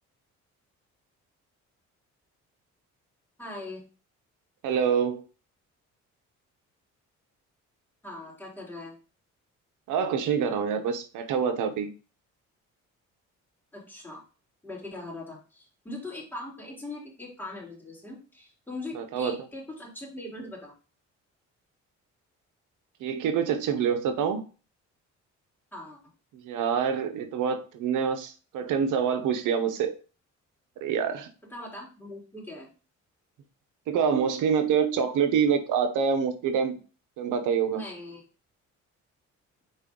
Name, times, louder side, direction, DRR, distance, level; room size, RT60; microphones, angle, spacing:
voice 1, 3.4-3.8 8.0-8.9 13.7-14.2 14.6-20.7 25.7-26.0 31.5-32.7 37.7-38.2, left 2 dB, 5° left, -3 dB, 3.4 m, -40 dB
voice 2, 4.6-5.2 9.9-11.9 19.0-19.4 23.0-24.4 26.4-29.9 30.8-31.3 33.9-36.7 37.2-37.8, right 7 dB, 85° right, 7 dB, 0.9 m, -26 dB
5.5 x 4.6 x 3.7 m, 0.35 s
cardioid pair, 90°, 30 cm